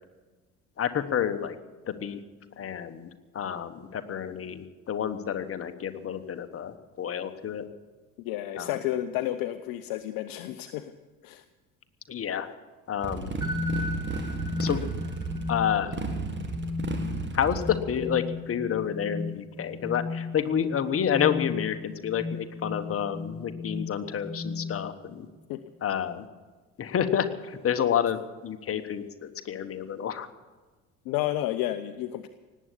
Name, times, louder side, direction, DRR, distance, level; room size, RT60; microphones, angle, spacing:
voice 1, 0.8-1.6 1.9-2.2 2.6-7.6 8.6-8.8 12.1-12.5 12.9-13.4 14.6-14.8 15.5-16.0 17.3-25.3 25.8-26.3 26.8-30.3, left 8 dB, 30° left, 8 dB, 1.2 m, -29 dB
voice 2, 8.2-10.9 11.2-11.4 25.5-25.6 31.1-32.3, left 13 dB, 50° left, 10 dB, 0.8 m, -31 dB
Motorcycle, 13.0-18.1, right 4 dB, 25° right, 2.1 m, -34 dB
sound 1, 13.4-25.1, left 3 dB, 10° right, 2.5 m, -35 dB
18.5 x 8.4 x 8.4 m, 1.3 s
figure-of-eight pair, 60°, 44 cm